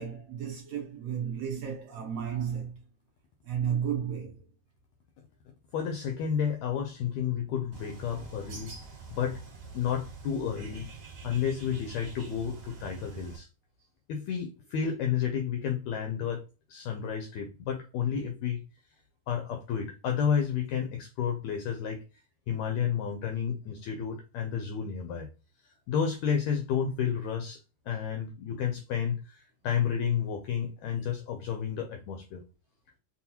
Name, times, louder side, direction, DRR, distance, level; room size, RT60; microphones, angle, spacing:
voice 1, 0.0-2.8 3.4-4.4, right 8 dB, 70° right, 1.6 m, -33 dB
voice 2, 5.7-8.7 9.1-9.4 9.7-10.9 11.2-13.5 14.1-16.4 16.7-18.6 19.3-22.0 22.5-25.3 25.6-27.6 27.9-32.4, left 8 dB, 80° left, 1.6 m, -31 dB
Bird, 7.7-13.4, right 4 dB, 40° right, 1.6 m, -45 dB
5.4 x 2.3 x 2.8 m
omnidirectional pair, 3.7 m